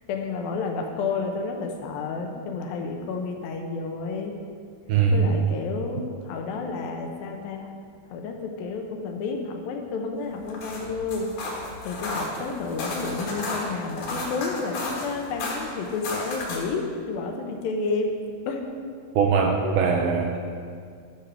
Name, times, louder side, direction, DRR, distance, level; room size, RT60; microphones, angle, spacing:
voice 1, 0.1-4.3 5.1-7.7 8.1-11.3 11.8-18.1 18.5-18.7 19.6-19.8, left 4 dB, 75° left, 3 dB, 2.6 m, -30 dB
voice 2, 4.9-5.4 19.2-20.4, right 5 dB, 80° right, 2 dB, 2.3 m, -21 dB
sound 1, 10.3-16.8, left 2 dB, 60° left, 2.9 m, -33 dB
13.5 x 4.6 x 6.2 m, 2.1 s
omnidirectional pair, 4.3 m